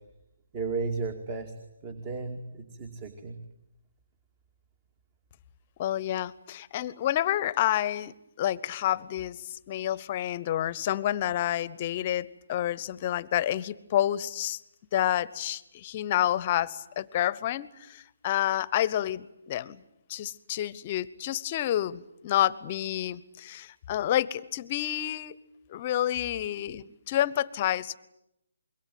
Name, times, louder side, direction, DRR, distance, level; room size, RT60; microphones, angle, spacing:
voice 1, 0.5-1.5 1.8-3.4, right 4 dB, 25° right, 8 dB, 2.4 m, -34 dB
voice 2, 5.8-9.4 9.7-14.6 14.9-19.8 20.1-25.3 25.7-28.0, left 12 dB, 30° left, 21 dB, 0.9 m, -29 dB
26.0 x 22.5 x 9.2 m, 0.83 s
figure-of-eight pair, 145°, 0 cm